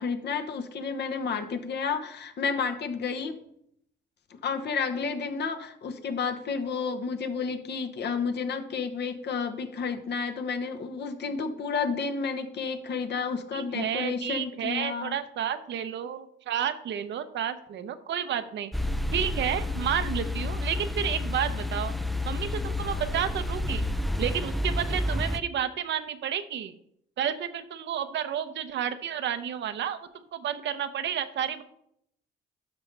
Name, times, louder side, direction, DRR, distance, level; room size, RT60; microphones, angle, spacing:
voice 1, 0.0-3.4 4.3-15.2, left 5 dB, 60° left, 7 dB, 1.0 m, -31 dB
voice 2, 13.5-18.7 19.1-21.9 22.2-23.9 24.2-26.8 27.2-31.6, right 9 dB, 65° right, 11 dB, 0.7 m, -31 dB
sound 1, 18.7-25.4, left 1 dB, ahead, 0.4 m, -30 dB
12.5 x 5.2 x 3.3 m, 0.73 s
cardioid pair, 90°, 20 cm